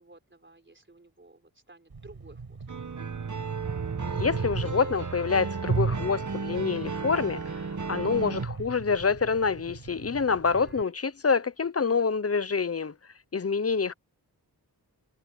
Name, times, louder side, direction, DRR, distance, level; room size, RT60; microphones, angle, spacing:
voice 1, 0.0-2.6 10.5-10.9, right 2 dB, 30° right, 3.9 m, -54 dB
sound 1, 1.9-10.8, right 4 dB, 65° right, 6.4 m, -36 dB
sound 2, 2.7-8.5, right 5 dB, 45° right, 1.2 m, -34 dB
voice 2, 4.2-7.6 7.9-12.9 13.3-13.9, left 5 dB, 35° left, 0.7 m, -27 dB
wide cardioid pair, 90°, 40 cm